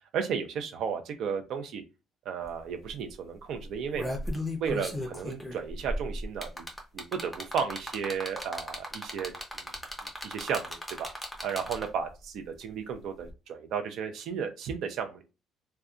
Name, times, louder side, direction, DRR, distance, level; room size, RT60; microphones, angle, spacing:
voice 1, 0.1-1.8 2.3-4.0 4.6-6.6 6.9-9.7 10.2-11.1 11.4-15.2, right 7 dB, 60° right, 6 dB, 0.5 m, -34 dB
sound 1, 2.4-2.5 2.8-3.1 3.6-12.1 13.3-13.4, left 1 dB, 5° left, 0.5 m, -36 dB
2.6 x 2.2 x 2.3 m, 0.29 s
cardioid pair, 145°, 0 cm